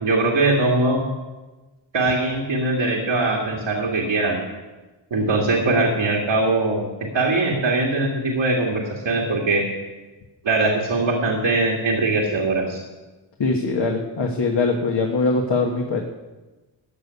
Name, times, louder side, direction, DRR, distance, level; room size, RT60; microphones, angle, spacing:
voice 1, 0.0-1.0 1.9-4.4 5.1-6.9 7.1-9.6 10.4-12.8, right 2 dB, 90° right, -1 dB, 2.2 m, -21 dB
voice 2, 13.4-16.0, left 3 dB, 65° left, 1 dB, 1.5 m, -22 dB
15.0 x 7.0 x 9.6 m, 1.2 s
wide cardioid pair, 120°, 46 cm